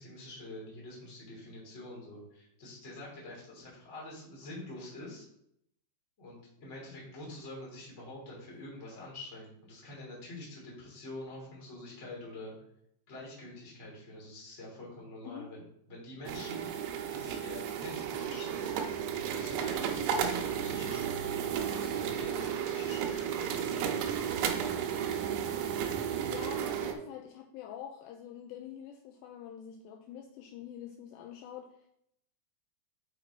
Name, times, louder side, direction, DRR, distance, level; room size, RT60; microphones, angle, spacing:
voice 1, 0.0-5.2 6.2-12.5 13.1-15.6 15.9-18.7 19.3-24.0, left 1 dB, 25° left, -4 dB, 1.7 m, -46 dB
sound 1, 16.3-26.9, right 8 dB, 80° right, 2.5 m, -33 dB
voice 2, 26.3-31.7, left 9 dB, 90° left, 3 dB, 2.4 m, -45 dB
6.0 x 5.9 x 4.1 m, 0.74 s
omnidirectional pair, 5.6 m